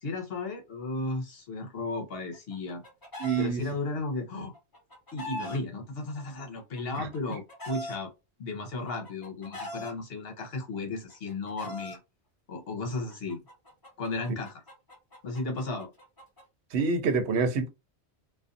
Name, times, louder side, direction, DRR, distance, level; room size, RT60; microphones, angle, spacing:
voice 1, 0.0-2.8 3.4-4.5 5.1-8.1 8.4-12.0 12.5-13.4 14.0-14.6 15.2-15.9, left 3 dB, 65° left, 1.0 m, -34 dB
Chicken rooster, 2.3-3.5 4.5-5.6 6.6-8.0 8.9-9.9 10.9-12.0 13.1-16.4, equal, 20° left, 0.7 m, -41 dB
voice 2, 3.2-3.6 7.0-7.1 16.7-17.7, right 4 dB, 75° right, 0.9 m, -26 dB
2.5 x 2.3 x 2.5 m
omnidirectional pair, 1.1 m